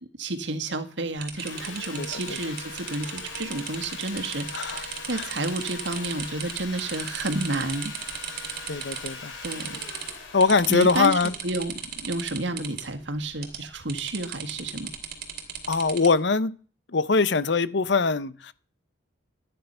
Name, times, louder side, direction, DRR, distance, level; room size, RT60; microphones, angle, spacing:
voice 1, 0.1-7.9 9.4-9.8 10.7-14.9, right 2 dB, 65° right, 1.7 m, -31 dB
sound 1, 1.2-9.1 9.4-10.1 10.4-12.8 13.4-13.6 13.9-16.1, right 8 dB, 50° right, 2.6 m, -36 dB
Sawing, 1.3-12.4, left 4 dB, 80° left, 3.5 m, -41 dB
voice 2, 2.0-2.4 4.5-4.8 5.1-5.3 8.7-9.3 10.3-11.3 15.7-16.6 16.9-18.5, left 4 dB, 60° left, 0.7 m, -22 dB
14.0 x 9.4 x 5.6 m
head